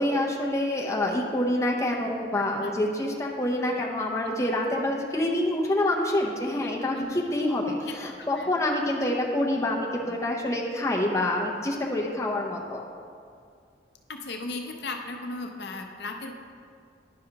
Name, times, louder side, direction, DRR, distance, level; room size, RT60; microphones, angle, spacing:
voice 1, 0.0-12.8, left 1 dB, 15° left, -2 dB, 0.6 m, -27 dB
voice 2, 2.3-2.7 4.2-4.5 6.6-7.2 7.9-8.5 14.1-16.3, left 3 dB, 70° left, 3 dB, 0.6 m, -37 dB
10.5 x 5.5 x 2.8 m, 2.2 s
head